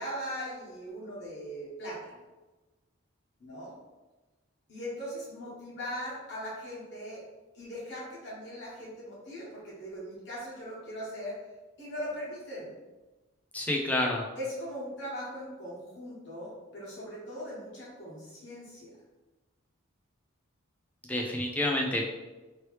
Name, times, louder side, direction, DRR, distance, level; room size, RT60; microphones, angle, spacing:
voice 1, 0.0-2.2 3.4-3.7 4.7-7.2 7.5-11.4 11.8-12.7 14.3-18.9, equal, 55° left, -7 dB, 1.4 m, -40 dB
voice 2, 13.5-14.2 21.1-22.1, left 1 dB, 5° left, 0 dB, 0.4 m, -28 dB
3.1 x 2.9 x 3.1 m, 1.2 s
head